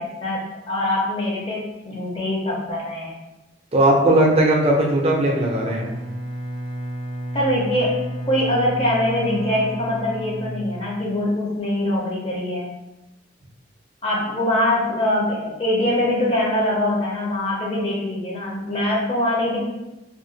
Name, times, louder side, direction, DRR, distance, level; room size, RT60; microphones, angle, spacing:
voice 1, 0.0-3.2 7.3-12.7 14.0-19.6, left 1 dB, 30° left, -4 dB, 0.5 m, -23 dB
voice 2, 3.7-5.9, right 1 dB, 30° right, -1 dB, 0.5 m, -18 dB
Bowed string instrument, 5.2-11.3, equal, 80° left, 1.0 m, -32 dB
2.4 x 2.2 x 3.8 m, 1.0 s
head